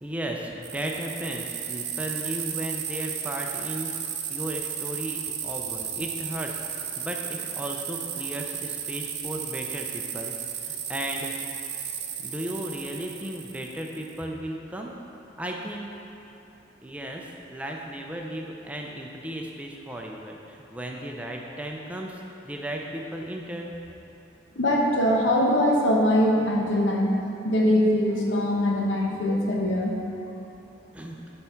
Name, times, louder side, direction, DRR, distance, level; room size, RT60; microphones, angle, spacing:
voice 1, 0.0-3.9 4.3-6.6 7.0-11.3 12.2-14.9 15.4-15.9 16.8-23.7 30.9-31.2, right 1 dB, 5° right, 0 dB, 0.4 m, -35 dB
sound 1, 0.6-14.2, right 8 dB, 60° right, 0.6 m, -34 dB
voice 2, 24.5-27.1 27.4-29.9, left 1 dB, 75° left, -1 dB, 1.1 m, -22 dB
7.9 x 4.4 x 5.7 m, 2.9 s
head